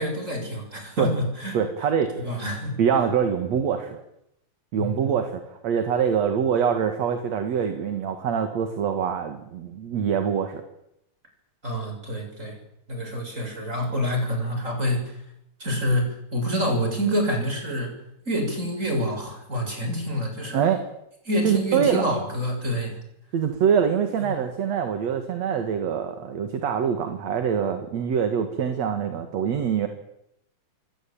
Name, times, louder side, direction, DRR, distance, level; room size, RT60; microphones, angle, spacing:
voice 1, 0.0-1.6 2.2-2.8 4.8-5.1 11.6-12.6 12.9-15.0 15.6-17.9 18.3-20.6 21.3-23.0, equal, 20° right, 4 dB, 7.7 m, -27 dB
voice 2, 1.5-2.2 2.8-4.0 4.7-10.6 20.5-20.8 21.4-22.0 23.3-29.9, right 7 dB, 55° right, 6 dB, 3.1 m, -24 dB
27.5 x 23.5 x 8.9 m, 0.80 s
omnidirectional pair, 3.8 m